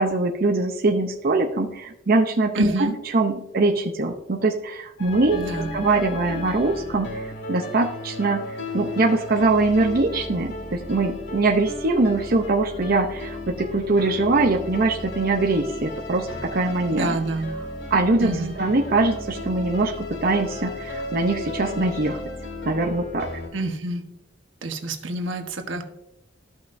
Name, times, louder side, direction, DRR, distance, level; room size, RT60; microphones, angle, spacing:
voice 1, 0.0-2.9 3.1-17.2 17.6-17.7 17.9-22.2 22.7-23.3, right 3 dB, 50° right, 2 dB, 0.7 m, -22 dB
voice 2, 2.6-2.9 5.3-5.7 16.9-17.5 18.2-18.5 23.5-24.0 24.6-25.8, right 1 dB, 80° right, 4 dB, 1.2 m, -27 dB
sound 1, 5.0-23.5, left 2 dB, 60° left, 1.9 m, -34 dB
13.5 x 5.8 x 2.6 m, 0.84 s
head